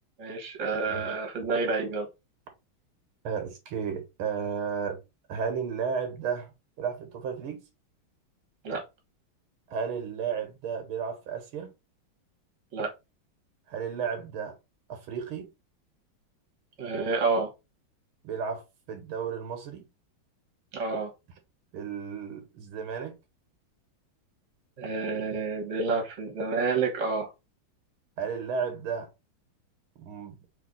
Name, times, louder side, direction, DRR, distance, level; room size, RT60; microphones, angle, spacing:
voice 1, 0.2-2.1 8.6-8.8 12.7-12.9 16.8-17.5 20.7-21.1 24.8-27.3, right 4 dB, 40° right, 1.6 m, -29 dB
voice 2, 3.2-5.0 5.3-6.5 6.8-7.6 9.7-11.7 13.7-14.6 14.9-15.5 18.2-19.9 21.7-23.2 28.2-29.1 30.0-30.4, right 6 dB, 85° right, 1.9 m, -33 dB
3.6 x 3.3 x 3.8 m
omnidirectional pair, 2.2 m